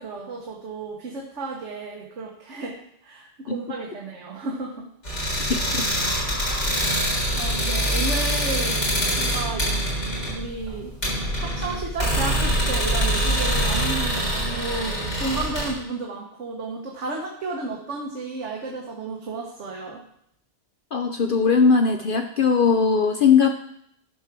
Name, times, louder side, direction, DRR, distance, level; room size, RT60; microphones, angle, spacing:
voice 1, 0.0-4.9 6.9-8.8 9.2-9.7 10.3-10.9 11.4-20.0, right 3 dB, 75° right, -1 dB, 1.5 m, -33 dB
sound 1, 5.0-15.7, equal, 70° left, 4.4 m, -24 dB
voice 2, 5.5-5.8 20.9-23.6, left 5 dB, 55° left, 5 dB, 0.7 m, -19 dB
12.0 x 4.7 x 5.9 m, 0.72 s
omnidirectional pair, 1.2 m